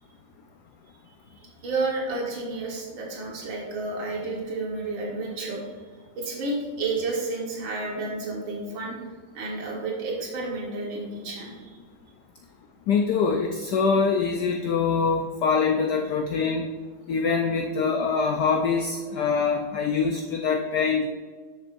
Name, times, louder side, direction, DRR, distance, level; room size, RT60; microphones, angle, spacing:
voice 1, 1.4-5.8 6.2-9.0 9.3-11.8, right 3 dB, 70° right, -2 dB, 2.3 m, -31 dB
voice 2, 12.9-16.7 17.1-21.1, left 5 dB, 75° left, 4 dB, 0.9 m, -24 dB
10.0 x 7.3 x 2.6 m, 1.5 s
omnidirectional pair, 2.2 m